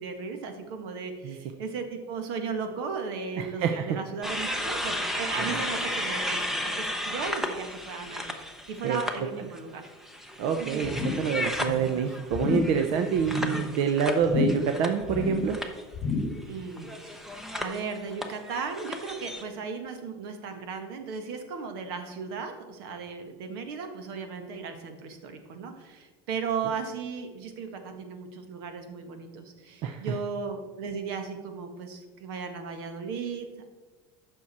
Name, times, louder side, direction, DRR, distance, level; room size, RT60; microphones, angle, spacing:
voice 1, 0.0-8.4 8.7-9.8 10.6-10.9 13.5-13.6 16.5-33.7, right 5 dB, 80° right, 6 dB, 1.6 m, -36 dB
voice 2, 3.4-4.0 5.4-5.6 8.8-9.0 10.4-15.6 29.8-30.2, right 7 dB, 50° right, 5 dB, 0.7 m, -27 dB
sound 1, 4.2-9.2 9.5-15.2 15.5-15.8 16.7-19.4, left 1 dB, 5° right, 0.8 m, -34 dB
sound 2, 10.8-11.3 11.6-12.0 12.3-12.8 13.2-13.6 14.2-14.8 15.0-15.5 15.9-16.5 16.8-16.9, left 4 dB, 25° left, 2.3 m, -30 dB
14.0 x 6.3 x 4.3 m, 1.3 s
cardioid pair, 165°, 12 cm